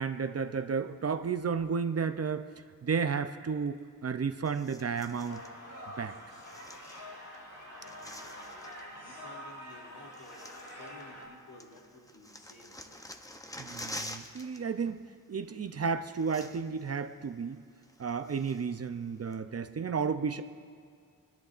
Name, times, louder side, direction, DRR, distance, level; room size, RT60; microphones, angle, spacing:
voice 1, 0.0-2.5 2.8-5.4 6.0-6.1 13.6-15.0 15.3-17.6 18.0-20.4, right 6 dB, 45° right, 9 dB, 0.6 m, -32 dB
sound 1, 4.5-5.5 6.3-7.4 7.6-8.9 9.7-9.8 10.1-11.3 11.6-14.6 14.9-15.1 15.8-15.9 16.1-16.9 17.2-17.3 17.8-18.8 19.3-19.4, left 1 dB, 10° left, 0.7 m, -47 dB
sound 2, 5.2-11.3, left 1 dB, 50° left, 3.7 m, -46 dB
voice 2, 7.9-8.4 8.9-13.0, left 1 dB, 75° left, -2 dB, 2.9 m, -54 dB
27.5 x 10.5 x 2.5 m, 2.2 s
wide cardioid pair, 85°, 35 cm